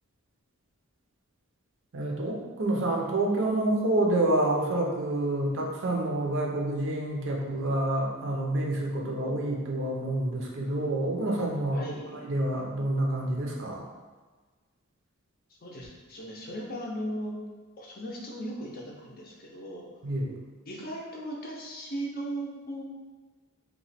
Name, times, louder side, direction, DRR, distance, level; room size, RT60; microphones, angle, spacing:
voice 1, 1.9-11.8 12.2-13.8 20.0-20.3, right 1 dB, 55° right, -1 dB, 0.5 m, -28 dB
voice 2, 11.7-12.3 15.6-17.3 17.8-19.9 20.7-22.8, right 1 dB, 40° left, -2 dB, 0.5 m, -37 dB
2.9 x 2.2 x 4.0 m, 1.4 s
head